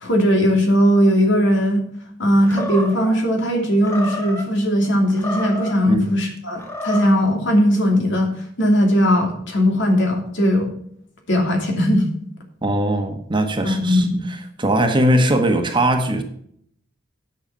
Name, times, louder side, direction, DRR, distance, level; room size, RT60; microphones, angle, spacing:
voice 1, 0.0-1.8 2.2-8.3 8.6-10.7 11.3-12.1 13.6-14.3, equal, 65° left, 2.8 m, -18 dB
Animal, 2.4-3.2 3.8-4.5 5.1-5.8 6.5-7.2, equal, 15° left, 1.8 m, -29 dB
voice 2, 12.6-14.1 14.6-16.2, right 1 dB, 25° right, 1.4 m, -19 dB
10.0 x 6.9 x 5.6 m
head